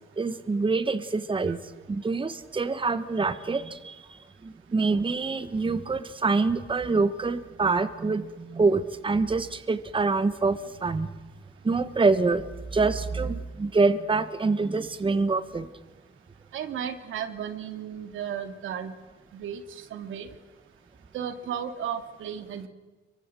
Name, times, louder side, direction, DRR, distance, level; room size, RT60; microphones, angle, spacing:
voice 1, 0.2-1.6 1.9-3.9 4.7-11.1 11.6-12.5 12.7-15.7, right 3 dB, 25° right, 11 dB, 1.5 m, -25 dB
voice 2, 16.5-18.9 19.3-20.3 21.1-22.7, right 8 dB, 80° right, 7 dB, 2.6 m, -34 dB
26.0 x 24.0 x 7.9 m, 1.2 s
cardioid pair, 90°, 20 cm